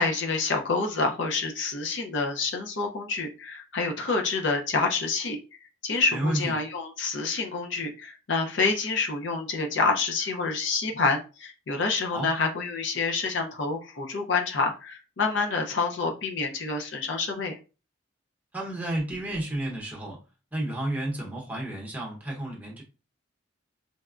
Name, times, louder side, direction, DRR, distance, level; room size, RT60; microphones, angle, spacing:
voice 1, 0.0-5.4 5.8-17.6, left 4 dB, 70° left, 3 dB, 0.6 m, -27 dB
voice 2, 6.1-6.5 12.1-12.3 18.5-20.2 20.5-22.8, right 1 dB, 10° right, -3 dB, 0.9 m, -31 dB
4.0 x 2.2 x 2.4 m, 0.33 s
head